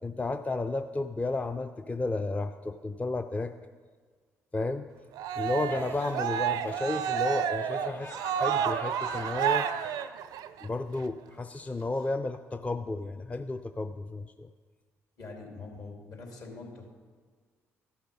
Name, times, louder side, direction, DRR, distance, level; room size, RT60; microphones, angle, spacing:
voice 1, 0.0-3.5 4.5-4.8 5.4-9.7 10.6-14.5, left 2 dB, 20° left, 8 dB, 0.4 m, -32 dB
Cheering, 5.2-10.6, right 9 dB, 70° right, 0.4 m, -30 dB
Laughter, 5.3-10.1, left 3 dB, 40° left, 2.8 m, -45 dB
voice 2, 15.2-16.9, left 3 dB, 60° left, 1 dB, 2.8 m, -44 dB
14.0 x 5.8 x 5.3 m, 1.5 s
hypercardioid pair, 50°, 7 cm